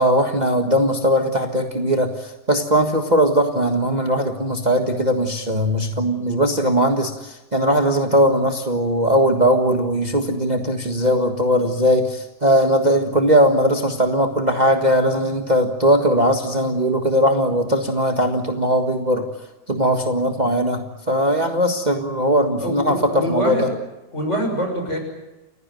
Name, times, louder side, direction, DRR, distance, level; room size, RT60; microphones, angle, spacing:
voice 1, 0.0-19.3 19.7-23.6, equal, 25° right, 4 dB, 1.7 m, -19 dB
voice 2, 22.6-23.7 24.1-25.0, equal, 45° left, 3 dB, 6.9 m, -24 dB
29.5 x 16.0 x 9.3 m, 1.0 s
omnidirectional pair, 1.7 m